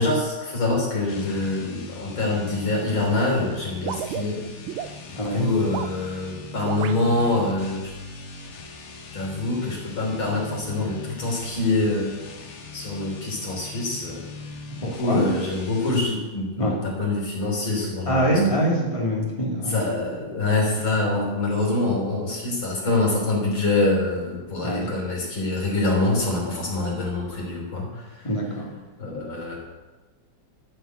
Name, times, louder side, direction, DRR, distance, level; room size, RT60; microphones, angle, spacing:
voice 1, 0.0-4.4 5.3-7.9 9.1-12.1 12.7-14.2 15.0-18.5 19.7-28.3 29.0-29.6, left 2 dB, 75° left, -2 dB, 4.5 m, -25 dB
sound 1, 1.0-16.1, left 3 dB, 40° left, 1.3 m, -41 dB
sound 2, 3.9-4.9 5.6-6.0 6.6-7.0, right 10 dB, 85° right, 1.4 m, -32 dB
voice 2, 5.2-5.5 14.8-15.3 16.6-16.8 18.1-19.9 24.6-24.9 28.2-28.7, right 1 dB, 15° left, -3 dB, 2.8 m, -24 dB
13.0 x 7.7 x 8.1 m, 1.2 s
omnidirectional pair, 2.2 m